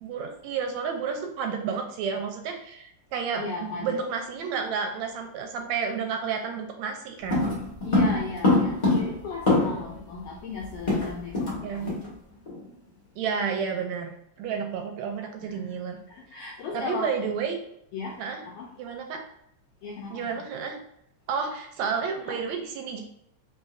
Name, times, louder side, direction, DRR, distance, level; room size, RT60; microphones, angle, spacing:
voice 1, 0.0-7.6 9.7-9.8 11.6-11.9 13.2-16.0 16.7-17.6 18.2-18.4 18.8-19.3 20.1-20.8 21.3-23.0, right 6 dB, 80° right, 4 dB, 1.7 m, -31 dB
voice 2, 3.3-4.0 7.9-12.0 15.4-15.7 16.1-17.1 17.9-18.2 18.6-18.7 19.8-20.4 22.2-22.4, left 4 dB, 80° left, -2 dB, 1.4 m, -36 dB
sound 1, 7.3-10.0 10.2-10.3 10.6-11.6 11.9-12.1 12.5-12.7, left 2 dB, 45° left, 0.5 m, -24 dB
3.9 x 3.8 x 2.5 m, 0.76 s
omnidirectional pair, 3.3 m